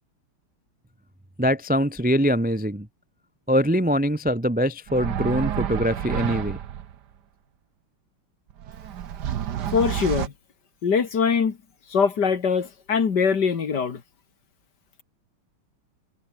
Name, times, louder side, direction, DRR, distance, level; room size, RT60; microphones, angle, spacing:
voice 1, 1.4-2.9 3.5-6.6, equal, 5° right, 0.8 m, -23 dB
sound 1, 4.9-6.9 8.5-10.3, right 10 dB, 55° right, 1.5 m, -29 dB
voice 2, 9.7-10.3 10.8-11.6 11.9-14.0, left 6 dB, 50° left, 2.4 m, -22 dB
omnidirectional pair, 2.4 m